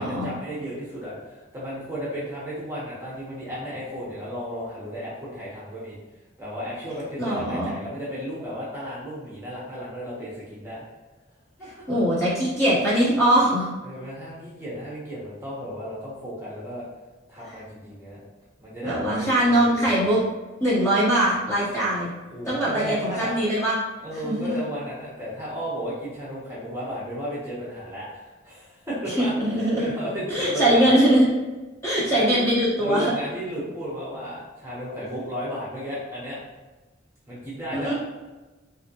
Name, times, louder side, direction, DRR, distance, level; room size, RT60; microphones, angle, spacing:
voice 1, 0.0-6.0 6.4-10.8 11.6-11.7 13.8-16.8 17.3-18.2 18.6-20.1 22.3-23.3 24.0-31.0 32.1-32.4 32.8-36.4 37.3-37.9, equal, 15° right, -8 dB, 0.9 m, -34 dB
voice 2, 7.2-7.7 11.9-13.7 18.8-20.2 20.6-22.1 22.5-23.7 24.2-24.6 29.2-29.9 30.3-31.2 31.8-33.1 37.7-37.9, right 1 dB, 15° left, -8 dB, 1.0 m, -21 dB
3.5 x 2.6 x 2.8 m, 1.2 s
head